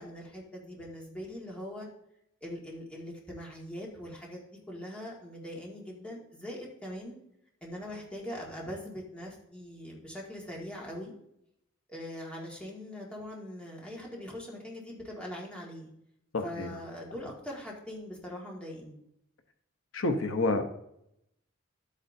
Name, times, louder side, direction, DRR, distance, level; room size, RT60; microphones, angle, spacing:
voice 1, 0.0-1.9 2.4-7.2 7.6-11.1 11.9-15.9 16.4-19.0, left 1 dB, 5° left, -3 dB, 1.9 m, -42 dB
voice 2, 16.3-16.7 19.9-20.8, left 2 dB, 85° left, 6 dB, 0.9 m, -29 dB
12.0 x 8.4 x 2.7 m, 0.77 s
head